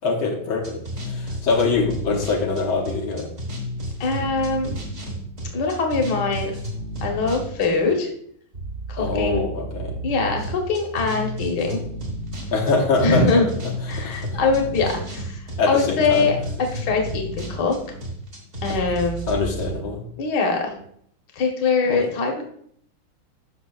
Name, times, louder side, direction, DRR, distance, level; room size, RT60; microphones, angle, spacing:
voice 1, 0.0-3.3 9.0-10.3 12.5-13.3 13.9-14.1 15.6-16.3 19.3-20.0 21.9-22.0, left 3 dB, 85° left, 1 dB, 1.9 m, -24 dB
sound 1, 0.6-7.9 8.5-19.7, equal, 40° right, 1.8 m, -32 dB
voice 2, 4.0-4.7 5.5-6.5 7.0-8.1 8.9-9.4 10.0-11.8 13.0-13.5 13.9-16.4 16.7-17.8 18.6-19.3 20.2-20.7 21.3-22.4, left 4 dB, 60° left, 2 dB, 1.6 m, -22 dB
12.5 x 5.7 x 2.3 m, 0.66 s
omnidirectional pair, 2.2 m